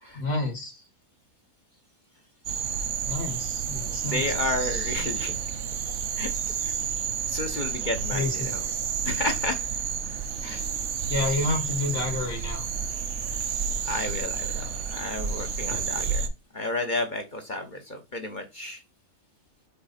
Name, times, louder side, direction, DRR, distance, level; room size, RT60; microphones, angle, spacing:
voice 1, 0.1-0.8 3.0-4.3 8.1-8.3 11.1-12.7 15.7-16.1, left 2 dB, 65° left, 3 dB, 2.5 m, -30 dB
sound 1, 2.5-16.3, right 7 dB, 65° right, 1.3 m, -30 dB
voice 2, 4.0-5.3 6.2-6.3 6.6-6.7 7.3-8.6 9.0-9.6 10.4-10.6 13.8-16.3 16.5-18.8, left 2 dB, 35° left, 4 dB, 1.0 m, -31 dB
5.6 x 4.9 x 4.2 m, 0.24 s
omnidirectional pair, 1.6 m